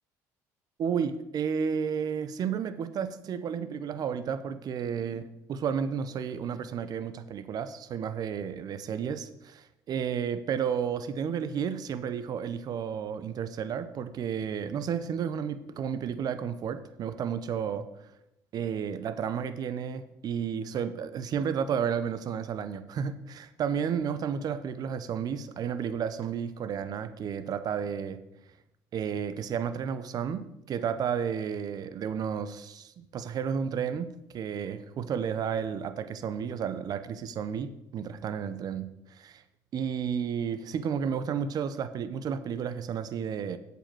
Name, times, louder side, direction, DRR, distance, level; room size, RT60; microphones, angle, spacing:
voice 1, 0.8-17.9 18.5-28.2 28.9-38.9 39.2-39.4 39.7-43.6, right 7 dB, 55° right, 13 dB, 0.9 m, -32 dB
8.3 x 5.6 x 7.8 m, 0.89 s
supercardioid pair, 75°, 8 cm